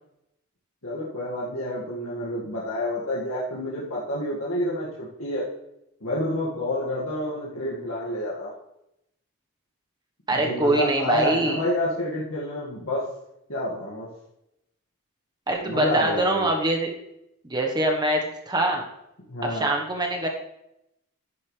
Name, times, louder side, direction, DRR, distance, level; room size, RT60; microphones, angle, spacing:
voice 1, 0.8-5.4 6.0-8.5 10.3-13.0 13.5-14.1 15.6-16.5 19.3-19.7, left 1 dB, 70° left, -7 dB, 2.1 m, -29 dB
voice 2, 10.3-11.6 15.5-16.9 17.4-18.8 19.4-20.3, right 1 dB, 20° right, 1 dB, 1.3 m, -24 dB
11.0 x 9.5 x 3.4 m, 0.83 s
head